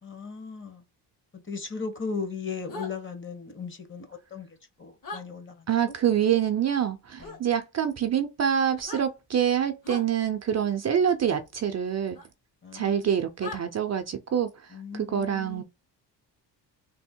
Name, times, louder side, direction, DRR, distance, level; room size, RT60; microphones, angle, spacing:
voice 1, 0.0-0.8 1.3-5.9 7.2-7.4 12.6-13.2 14.7-15.6, left 5 dB, 25° left, 1.0 m, -37 dB
sound 1, 2.7-2.9 5.0-5.2 7.2-7.4 8.7-9.0 9.8-10.1 12.1-12.3 13.4-13.6, left 3 dB, 45° left, 1.4 m, -38 dB
voice 2, 5.7-12.2 12.7-15.6, right 8 dB, 40° right, 0.5 m, -26 dB
3.5 x 2.1 x 4.3 m
cardioid pair, 95°, 43 cm